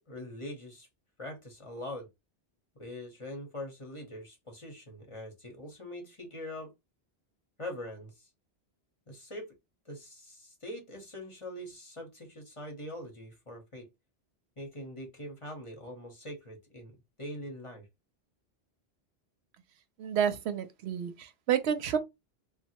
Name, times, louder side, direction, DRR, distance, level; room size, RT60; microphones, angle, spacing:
voice 1, 0.1-0.9 1.2-2.1 2.8-6.7 7.6-8.3 9.1-9.5 9.9-13.9 14.6-17.9, left 1 dB, 30° left, 0.8 m, -43 dB
voice 2, 20.0-22.0, right 8 dB, 90° right, 0.9 m, -30 dB
3.1 x 2.2 x 2.9 m
omnidirectional pair, 1.1 m